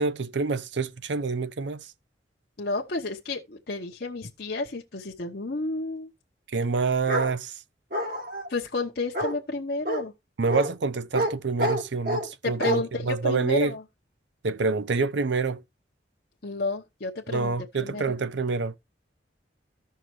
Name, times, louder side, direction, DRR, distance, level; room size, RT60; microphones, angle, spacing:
voice 1, 0.0-1.9 6.5-7.6 10.4-13.7 14.4-15.6 17.3-18.8, right 4 dB, 70° right, 0.6 m, -27 dB
voice 2, 2.6-6.1 8.5-10.1 12.4-13.8 16.4-18.0, left 3 dB, 55° left, 1.0 m, -31 dB
Bark, 7.1-7.3 7.9-8.5 9.1-9.3 9.9-10.0 10.5-10.7 11.1-11.3 11.6-12.3 12.6-12.8, right 1 dB, 50° right, 2.0 m, -27 dB
14.5 x 5.7 x 3.2 m
head